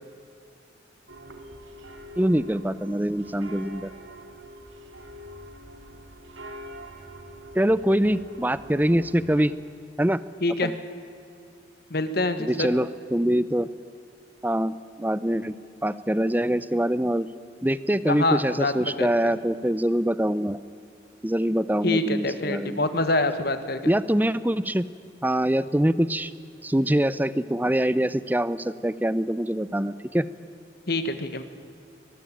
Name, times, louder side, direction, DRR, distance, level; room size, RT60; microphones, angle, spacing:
sound 1, 1.1-9.4, equal, 90° right, 2.7 m, -44 dB
voice 1, 2.2-3.9 7.5-9.5 10.0-10.2 10.6-10.7 12.4-13.7 14.4-15.6 15.8-17.3 17.6-20.6 21.2-22.8 23.9-24.8 25.2-26.3 26.6-30.3, right 1 dB, 10° right, 16 dB, 0.6 m, -24 dB
voice 2, 10.4-10.7 11.9-12.7 18.1-19.3 21.8-23.9 30.9-31.4, left 2 dB, 55° left, 10 dB, 1.6 m, -26 dB
23.0 x 20.0 x 8.9 m, 2.5 s
head